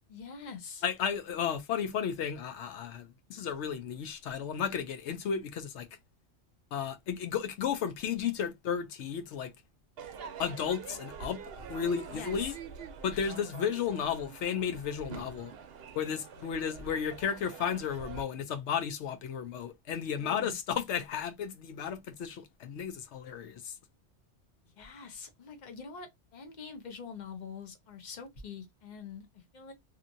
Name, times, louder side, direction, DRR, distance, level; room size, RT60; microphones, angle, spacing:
voice 1, 0.1-0.8 12.1-12.6 13.1-13.2 20.2-20.5 24.8-29.7, left 6 dB, 45° left, 0.8 m, -45 dB
voice 2, 0.8-5.9 6.7-9.5 10.4-11.4 11.7-12.5 13.0-15.5 16.0-23.8, left 7 dB, 80° left, 0.9 m, -33 dB
Crowd / Fireworks, 10.0-18.2, right 5 dB, 65° right, 0.8 m, -45 dB
2.9 x 2.5 x 2.6 m
omnidirectional pair, 1.2 m